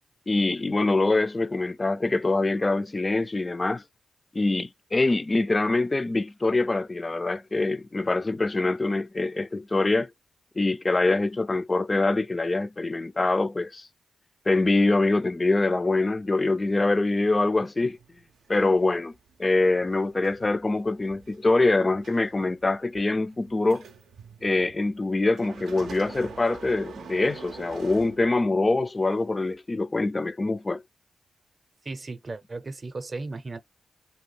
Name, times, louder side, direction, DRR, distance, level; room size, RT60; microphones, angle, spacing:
voice 1, 0.3-3.8 4.3-10.1 10.6-13.9 14.5-18.0 18.5-19.1 19.4-23.8 24.4-30.8, left 2 dB, 30° left, 0.3 m, -24 dB
sound 1, 17.9-28.7 29.4-29.5, right 5 dB, 90° right, 0.4 m, -46 dB
voice 2, 31.8-33.6, right 3 dB, 40° right, 0.5 m, -35 dB
2.7 x 2.2 x 3.2 m
cardioid pair, 75°, 0 cm